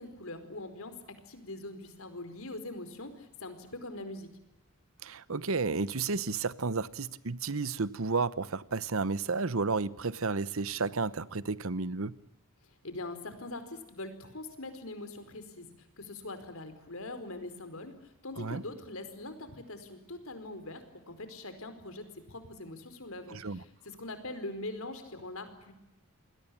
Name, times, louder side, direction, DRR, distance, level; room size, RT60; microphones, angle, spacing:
voice 1, 0.0-4.3 12.8-25.7, left 2 dB, 70° left, 4.8 m, -43 dB
voice 2, 5.0-12.1 18.4-18.6 23.3-23.6, right 4 dB, 70° right, 1.0 m, -32 dB
28.5 x 21.5 x 8.6 m
head